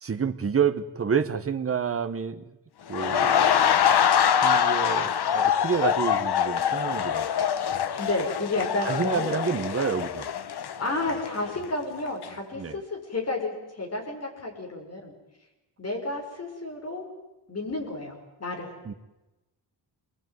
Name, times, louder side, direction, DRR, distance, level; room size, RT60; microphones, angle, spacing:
voice 1, 0.0-2.4 2.9-3.8 4.4-7.3 8.8-10.3 12.6-12.8 18.8-18.9, right 6 dB, 30° right, 9 dB, 1.3 m, -29 dB
sound 1, 2.9-11.8 12.1-12.3, left 8 dB, 65° left, 1.1 m, -24 dB
voice 2, 8.0-9.4 10.8-15.1 15.8-17.0 17.5-18.1 18.4-18.7, left 2 dB, 35° left, 2 dB, 6.2 m, -31 dB
27.5 x 21.5 x 9.4 m, 1.0 s
wide cardioid pair, 165°, 42 cm